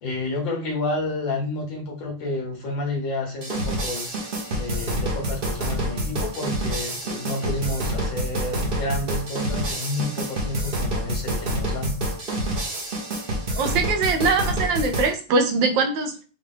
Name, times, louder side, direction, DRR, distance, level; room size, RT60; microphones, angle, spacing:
voice 1, 0.0-12.0, left 2 dB, 70° left, 0 dB, 2.1 m, -30 dB
sound 1, 3.4-15.1, right 1 dB, 45° right, 0.7 m, -27 dB
voice 2, 13.6-16.2, right 4 dB, 75° right, 5 dB, 1.3 m, -22 dB
5.0 x 2.4 x 3.5 m, 0.36 s
omnidirectional pair, 2.2 m